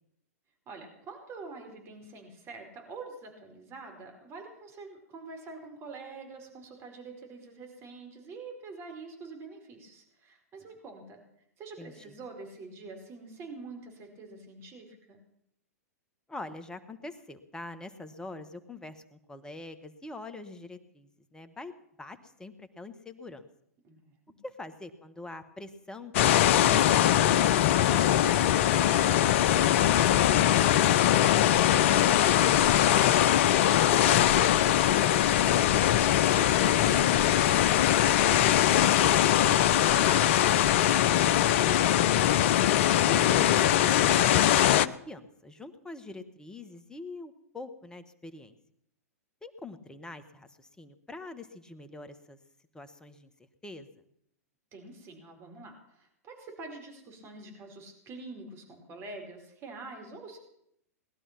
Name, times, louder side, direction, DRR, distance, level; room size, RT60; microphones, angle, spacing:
voice 1, 0.7-11.2 11.6-15.2 23.8-24.4 27.9-35.6 36.2-41.4 54.7-60.4, right 3 dB, 30° right, 3 dB, 4.9 m, -45 dB
voice 2, 11.8-12.2 16.3-21.7 22.0-23.5 24.4-27.0 42.0-42.5 43.0-48.5 49.4-52.4 52.7-53.3 53.6-53.9, left 2 dB, 10° left, 9 dB, 1.5 m, -44 dB
sound 1, 26.1-44.9, left 12 dB, 50° left, 0.6 m, -22 dB
19.5 x 12.0 x 6.0 m, 0.74 s
figure-of-eight pair, 105°, 8 cm